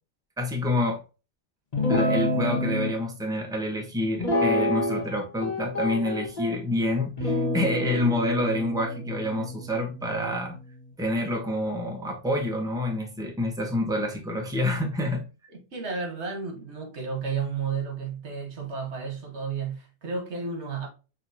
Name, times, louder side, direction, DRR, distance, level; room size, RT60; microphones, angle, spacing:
voice 1, 0.4-1.0 1.9-10.6 11.0-15.2, left 1 dB, 5° right, 1.0 m, -27 dB
Guitar, 1.7-2.9 4.2-5.1 5.4-6.6 7.2-10.6, left 1 dB, 35° left, 1.4 m, -28 dB
voice 2, 15.5-20.9, right 5 dB, 80° right, 1.5 m, -32 dB
6.5 x 2.8 x 2.7 m
omnidirectional pair, 1.1 m